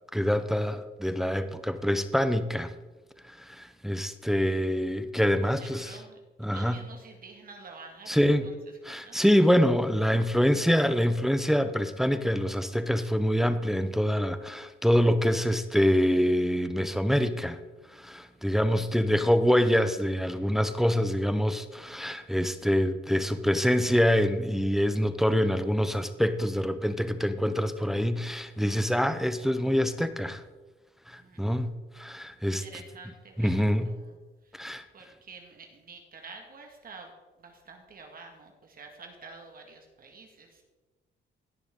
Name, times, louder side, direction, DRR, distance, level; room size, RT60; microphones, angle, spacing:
voice 1, 0.1-2.7 3.4-6.0 6.4-6.8 8.1-8.5 8.8-17.6 17.9-30.4 31.1-32.6 33.4-33.9 34.5-34.8, equal, ahead, 11 dB, 0.6 m, -25 dB
voice 2, 5.4-6.2 6.5-8.5 8.9-9.2 31.2-31.4 32.6-34.2 34.4-34.7 34.9-37.1 37.4-40.6, right 4 dB, 45° right, 3 dB, 1.7 m, -49 dB
17.5 x 6.2 x 3.7 m, 1.2 s
cardioid pair, 90°, 20 cm